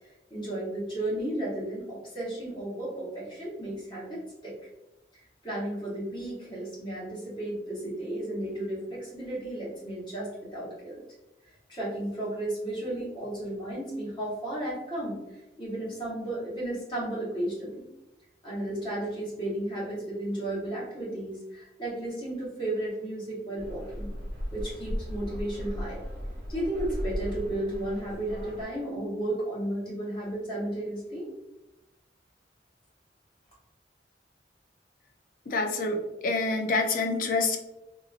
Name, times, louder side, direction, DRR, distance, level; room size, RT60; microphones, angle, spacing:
voice 1, 0.3-4.5 5.4-11.0 11.7-15.2 15.6-17.9 18.4-24.1 24.5-26.0 26.5-31.3, right 1 dB, 25° left, -7 dB, 1.3 m, -33 dB
sound 1, 23.6-28.6, equal, 60° right, 0.9 m, -36 dB
voice 2, 35.5-37.6, left 3 dB, 50° left, 4 dB, 0.4 m, -27 dB
3.0 x 2.6 x 2.4 m, 0.97 s
head